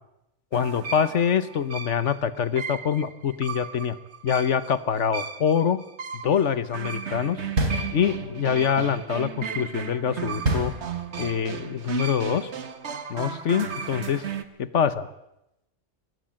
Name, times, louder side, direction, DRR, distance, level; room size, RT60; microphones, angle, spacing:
voice 1, 0.5-4.0 4.2-5.8 6.1-7.4 7.9-10.7 11.2-12.5 13.1-14.2 14.7-15.0, left 8 dB, 70° left, 14 dB, 1.4 m, -25 dB
sound 1, 0.5-14.4, right 6 dB, 60° right, 1.5 m, -35 dB
sound 2, 7.6-8.5 10.4-11.4, right 1 dB, 90° right, 3.8 m, -27 dB
23.5 x 19.0 x 7.7 m, 0.86 s
omnidirectional pair, 1.3 m